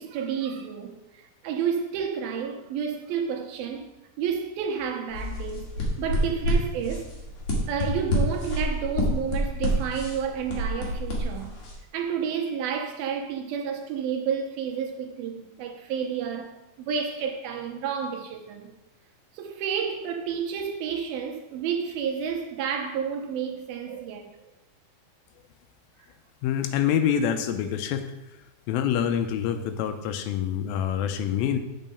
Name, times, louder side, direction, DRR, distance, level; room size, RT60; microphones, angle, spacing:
voice 1, 0.0-3.9 4.2-7.1 7.7-11.5 11.9-16.5 16.8-18.7 19.3-24.3, right 7 dB, 80° right, 2.8 m, -30 dB
sound 1, 5.1-11.7, equal, 50° left, 2.9 m, -28 dB
voice 2, 26.4-28.1 28.7-31.6, left 9 dB, 80° left, 2.4 m, -26 dB
7.3 x 5.5 x 6.9 m
omnidirectional pair, 4.3 m